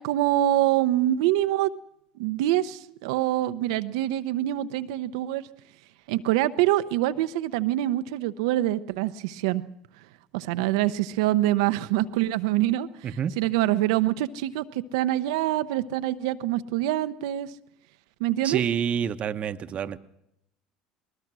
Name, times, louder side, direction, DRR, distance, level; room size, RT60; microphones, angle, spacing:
voice 1, 0.0-1.7 2.2-5.4 6.1-9.6 10.3-17.5 18.2-18.6, right 14 dB, 80° right, 13 dB, 0.8 m, -25 dB
voice 2, 18.4-20.0, right 8 dB, 45° right, 10 dB, 1.0 m, -28 dB
21.0 x 20.0 x 6.2 m, 0.82 s
hypercardioid pair, 80°, 3 cm